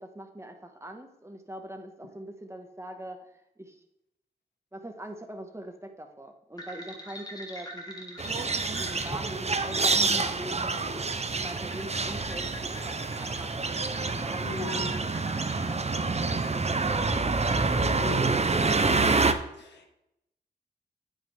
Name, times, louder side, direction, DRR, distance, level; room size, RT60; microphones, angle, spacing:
voice 1, 0.0-3.8 4.7-8.2 8.7-10.5 11.3-12.9 13.2-13.7 14.1-17.1, right 1 dB, 15° right, 4 dB, 1.8 m, -43 dB
sound 1, 6.6-16.8, left 1 dB, 20° left, 2.5 m, -43 dB
sound 2, 8.2-19.3, right 3 dB, 40° right, 0.9 m, -27 dB
voice 2, 14.4-14.9 18.0-19.2 19.6-19.9, left 4 dB, 90° left, 3 dB, 1.8 m, -39 dB
9.3 x 9.1 x 3.7 m, 0.83 s
cardioid pair, 50°, 17 cm